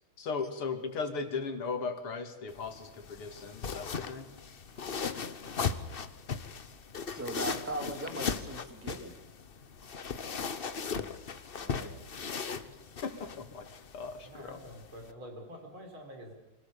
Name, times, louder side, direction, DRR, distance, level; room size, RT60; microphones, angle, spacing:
voice 1, 0.2-4.3 13.0-13.7 13.9-14.6, left 4 dB, 90° left, 7 dB, 3.1 m, -37 dB
sound 1, 2.5-15.1, left 6 dB, 50° left, 0.7 m, -38 dB
voice 2, 4.6-5.1 5.4-5.5 14.2-16.3, equal, 70° right, 3 dB, 5.3 m, -48 dB
voice 3, 7.1-9.1 11.6-11.9, right 1 dB, 5° right, 5 dB, 2.5 m, -39 dB
24.5 x 17.5 x 7.0 m, 0.98 s
omnidirectional pair, 2.3 m